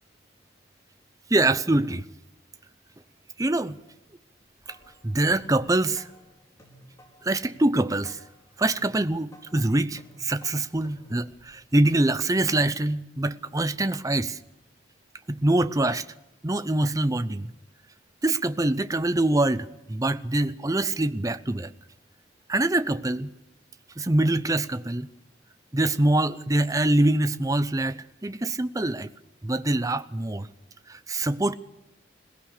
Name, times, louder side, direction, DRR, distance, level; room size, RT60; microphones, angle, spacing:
voice 1, 1.3-2.1 3.4-3.8 5.0-6.1 7.2-8.2 8.6-14.4 15.3-16.1 16.4-17.5 18.2-21.7 22.5-23.3 24.0-25.1 25.7-29.1 29.4-30.5 30.9-31.5, right 2 dB, 20° right, 0.6 m, -24 dB
sound 1, 4.4-12.1, equal, 15° left, 4.6 m, -55 dB
22.0 x 19.0 x 6.6 m
head